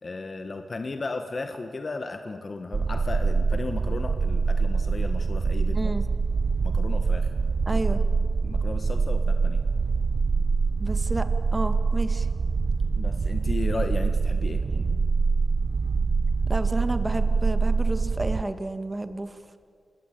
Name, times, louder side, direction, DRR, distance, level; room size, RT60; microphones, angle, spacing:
voice 1, 0.0-5.9 6.6-7.3 7.7-7.8 8.4-9.6 12.9-14.6, left 3 dB, 40° left, 6 dB, 1.6 m, -35 dB
sound 1, 2.7-18.4, right 4 dB, 50° right, 0.8 m, -24 dB
voice 2, 5.7-6.0 7.7-8.0 10.8-11.3 11.5-12.3 14.7-14.8 16.5-19.6, right 2 dB, 20° right, 9 dB, 2.1 m, -31 dB
29.0 x 21.0 x 8.7 m, 2.2 s
cardioid pair, 65°, 0 cm